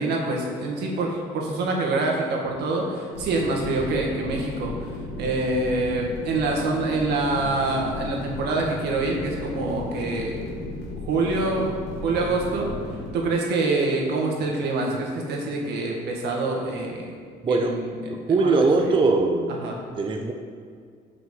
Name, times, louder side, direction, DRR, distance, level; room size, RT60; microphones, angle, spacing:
voice 1, 0.0-10.4 11.0-11.7 12.0-17.1 17.5-18.9 19.5-19.8, right 2 dB, 75° right, -1 dB, 1.9 m, -26 dB
sound 1, 3.1-13.1, left 2 dB, 85° left, 2.4 m, -35 dB
voice 2, 17.4-17.8 18.1-19.6 20.0-20.3, right 3 dB, 30° right, 3 dB, 0.6 m, -21 dB
6.2 x 5.8 x 7.1 m, 2.1 s
cardioid pair, 110°, 17 cm